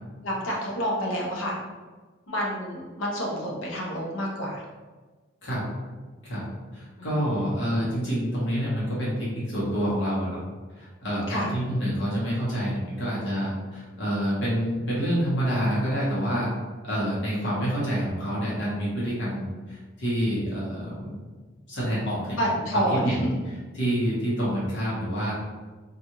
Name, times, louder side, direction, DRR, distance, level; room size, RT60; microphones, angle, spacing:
voice 1, 0.2-1.6 2.3-4.6 7.0-7.4 11.3-11.5 22.3-23.3, equal, 80° left, -3 dB, 0.7 m, -28 dB
voice 2, 6.7-10.4 10.8-16.5 16.8-21.1 21.7-22.4 22.7-23.3 23.7-25.3, equal, 65° left, -8 dB, 1.1 m, -27 dB
2.5 x 2.4 x 2.9 m, 1.3 s
head